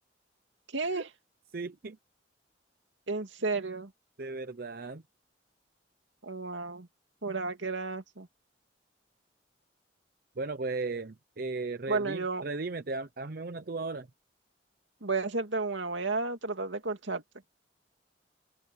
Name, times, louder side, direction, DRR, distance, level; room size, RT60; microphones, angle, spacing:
voice 1, 0.7-1.1 3.1-3.9 6.2-6.9 7.2-8.3 11.9-12.4 15.0-17.2, right 3 dB, 85° right, 2.5 m, -32 dB
voice 2, 1.5-2.0 4.2-5.0 10.4-14.1, right 3 dB, 50° right, 0.7 m, -36 dB
open air
head